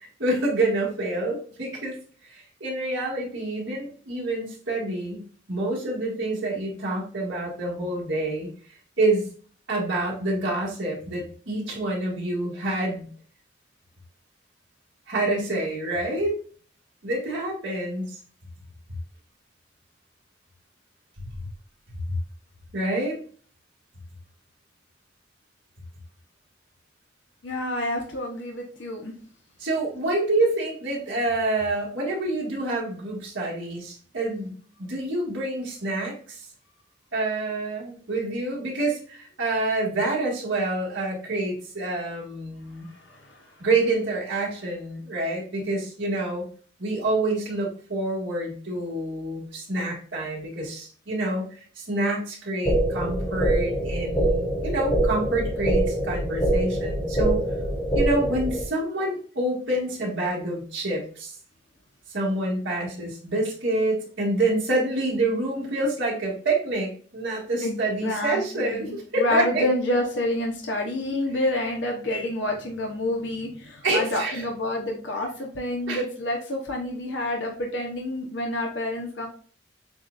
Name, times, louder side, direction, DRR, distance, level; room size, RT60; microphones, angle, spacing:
voice 1, 0.2-2.0 2.2-8.5 9.0-9.3 9.7-13.1 15.1-16.4 17.0-18.2 22.1-22.2 22.7-23.2 29.6-36.4 37.1-42.9 43.6-46.4 46.8-51.5 51.8-57.4 57.9-61.4 62.1-69.7 73.8-74.4 75.9-76.0, right 2 dB, 80° right, -4 dB, 1.8 m, -27 dB
voice 2, 27.4-29.1 42.9-43.4 54.1-54.3 67.6-79.3, left 1 dB, 75° left, 1 dB, 0.8 m, -28 dB
sound 1, 52.7-58.7, right 1 dB, 15° left, 0.8 m, -24 dB
7.1 x 2.4 x 2.5 m, 0.43 s
head